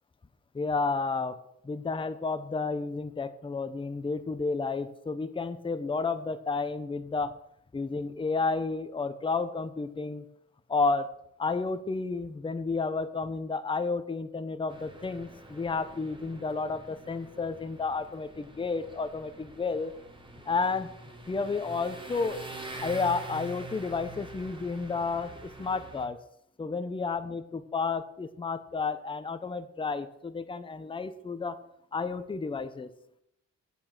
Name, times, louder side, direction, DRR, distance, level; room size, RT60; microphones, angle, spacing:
voice 1, 0.5-1.4 1.6-7.4 7.7-10.3 10.7-11.1 11.4-19.9 20.4-20.9 21.3-22.4 22.8-26.2 26.6-31.6 31.9-32.9, left 4 dB, 15° left, 10 dB, 0.6 m, -31 dB
sound 1, 14.7-26.1, right 2 dB, 15° right, 1.4 m, -45 dB
8.5 x 7.0 x 5.8 m, 0.75 s
wide cardioid pair, 130°, 29 cm